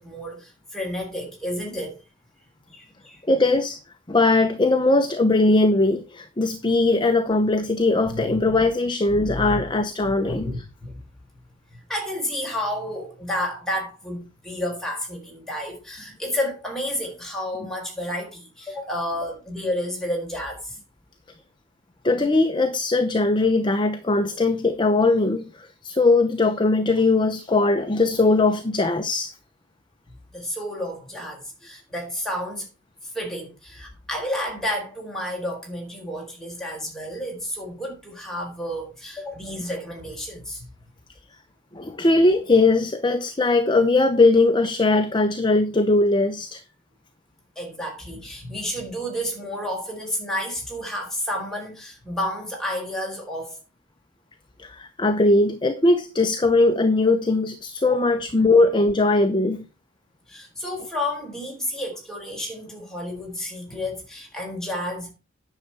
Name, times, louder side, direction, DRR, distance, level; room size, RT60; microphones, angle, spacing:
voice 1, 0.0-2.0 2.7-3.2 8.1-8.6 9.1-9.6 10.0-11.0 11.7-20.8 30.3-32.7 33.0-40.7 47.6-53.6 57.8-58.0 60.3-65.1, left 1 dB, 5° left, 4.3 m, -31 dB
voice 2, 3.3-3.8 4.1-10.5 22.0-29.3 41.7-46.6 54.6-59.6, left 2 dB, 25° left, 0.8 m, -20 dB
9.9 x 6.7 x 4.6 m
head